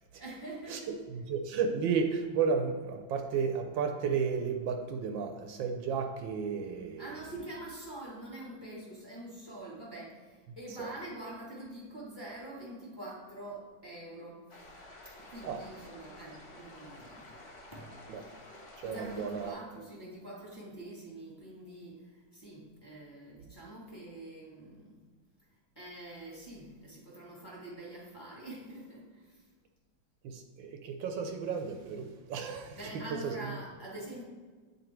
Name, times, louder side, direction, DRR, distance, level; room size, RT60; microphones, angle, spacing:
voice 1, 0.2-1.0 7.0-14.6 15.2-17.4 17.7-18.0 18.8-25.0 25.7-29.5 32.7-34.2, right 1 dB, 15° left, -5 dB, 1.5 m, -45 dB
voice 2, 1.1-7.1 10.8-10.9 15.4-15.6 18.1-18.2 18.8-19.6 30.2-32.8 33.2-33.3, right 6 dB, 80° right, 5 dB, 1.3 m, -33 dB
sound 1, 14.5-19.5, left 2 dB, 45° left, 0.9 m, -51 dB
8.9 x 4.0 x 4.4 m, 1.5 s
omnidirectional pair, 2.2 m